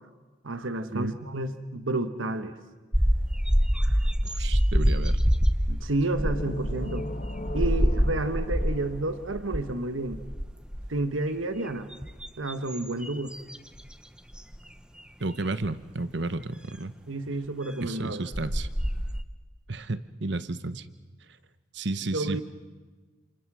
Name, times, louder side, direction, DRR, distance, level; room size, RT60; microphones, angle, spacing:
voice 1, 0.4-2.5 5.7-7.1 7.5-10.2 10.9-11.9 12.4-13.3 17.1-18.3 22.1-22.4, right 2 dB, 90° right, 10 dB, 1.3 m, -30 dB
sound 1, 2.9-9.0 9.3-9.7 10.1-11.0 11.7-13.9 14.3-14.6 15.6-15.7 17.9-18.0 18.3-19.2, equal, 5° right, 0.8 m, -26 dB
voice 2, 4.2-5.2 15.2-16.9 17.8-18.7 19.7-20.8 21.7-22.4, right 2 dB, 60° right, 13 dB, 1.0 m, -32 dB
sound 2, 6.2-9.9, left 1 dB, 45° left, 1.8 m, -37 dB
28.5 x 28.0 x 6.2 m, 1.3 s
head